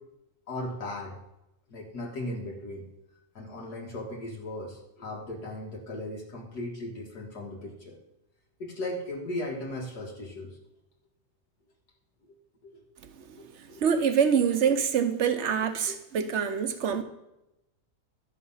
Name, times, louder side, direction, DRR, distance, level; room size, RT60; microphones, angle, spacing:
voice 1, 0.5-1.2 1.7-2.9 3.3-8.0 8.6-10.6 12.3-12.9 13.4-13.9 15.9-16.0, left 1 dB, 80° left, 2.4 m, -37 dB
voice 2, 13.6-17.0, right 7 dB, 50° right, 1.1 m, -25 dB
12.5 x 8.4 x 5.7 m
omnidirectional pair, 1.7 m